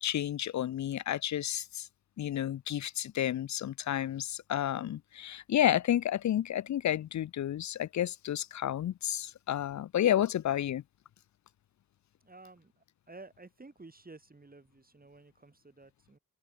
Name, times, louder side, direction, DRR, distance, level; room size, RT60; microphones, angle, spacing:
voice 1, 0.0-1.9 2.2-10.8, left 11 dB, 55° left, 0.5 m, -31 dB
voice 2, 12.2-16.2, right 3 dB, 25° right, 5.4 m, -53 dB
open air
cardioid pair, 95°, 34 cm